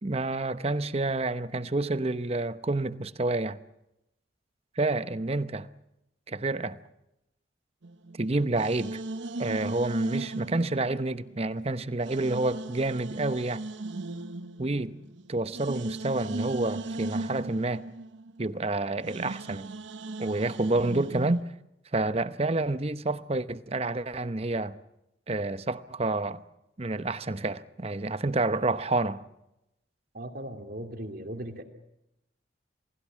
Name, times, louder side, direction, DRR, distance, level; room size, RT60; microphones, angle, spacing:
voice 1, 0.0-3.6 4.8-5.7 6.3-6.8 8.2-9.0 9.4-13.6 14.6-15.0 15.3-17.9 18.4-19.7 20.2-21.4 21.9-24.8 25.3-26.4 26.8-29.2, right 2 dB, 30° right, 0.8 m, -29 dB
sound 1, 7.8-11.6 12.0-21.4, right 2 dB, 70° right, 0.9 m, -37 dB
voice 2, 30.1-31.6, right 1 dB, 50° right, 2.5 m, -38 dB
28.5 x 20.0 x 7.5 m
head